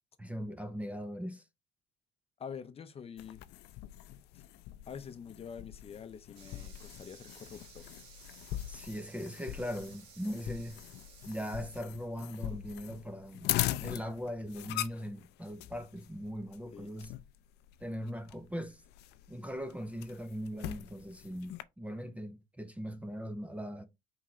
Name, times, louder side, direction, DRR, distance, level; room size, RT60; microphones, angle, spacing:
voice 1, 0.2-1.4 8.7-10.8 11.3-13.5 13.8-17.1 17.8-18.8 19.3-23.9, equal, 10° right, 0.5 m, -40 dB
voice 2, 2.4-3.4 4.9-7.8 16.7-16.9, left 7 dB, 35° left, 0.6 m, -46 dB
sound 1, 3.2-21.6, left 15 dB, 85° left, 0.4 m, -41 dB
sound 2, 6.3-11.8, right 5 dB, 85° right, 1.5 m, -56 dB
4.7 x 3.6 x 3.1 m
cardioid pair, 110°, 17 cm